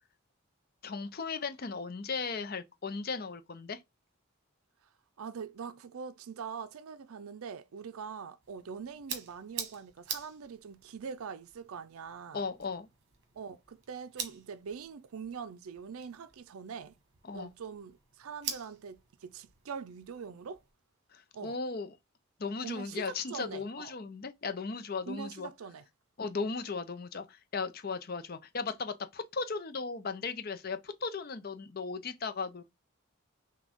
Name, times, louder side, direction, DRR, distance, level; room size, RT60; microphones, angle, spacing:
voice 1, 0.8-3.8 12.3-12.9 17.3-17.5 21.1-22.0 22.4-25.5 26.2-32.6, left 4 dB, 45° left, 0.6 m, -36 dB
voice 2, 5.2-12.4 13.3-17.0 17.3-20.6 21.3-21.6 22.6-23.9 25.1-25.9, right 6 dB, 80° right, 0.4 m, -43 dB
sound 1, 8.4-20.7, right 7 dB, 55° right, 1.2 m, -46 dB
6.1 x 2.3 x 3.5 m
head